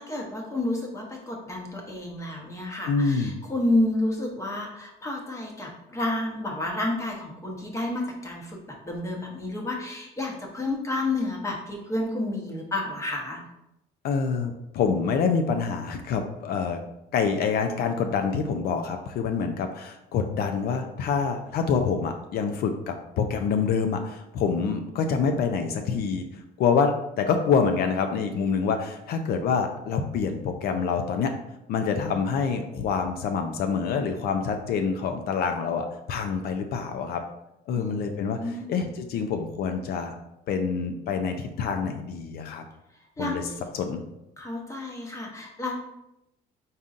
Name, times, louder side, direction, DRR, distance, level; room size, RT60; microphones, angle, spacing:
voice 1, 0.0-13.4 37.7-38.0 38.4-38.7 43.2-43.6 44.4-45.8, left 2 dB, 15° left, 0 dB, 0.9 m, -30 dB
voice 2, 2.9-3.4 14.0-16.8 17.1-31.3 31.7-37.2 37.7-38.4 38.7-40.1 40.5-42.6 43.2-43.4 43.7-44.0, left 5 dB, 65° left, 6 dB, 0.5 m, -26 dB
4.0 x 3.7 x 2.5 m, 0.86 s
cardioid pair, 110°, 17 cm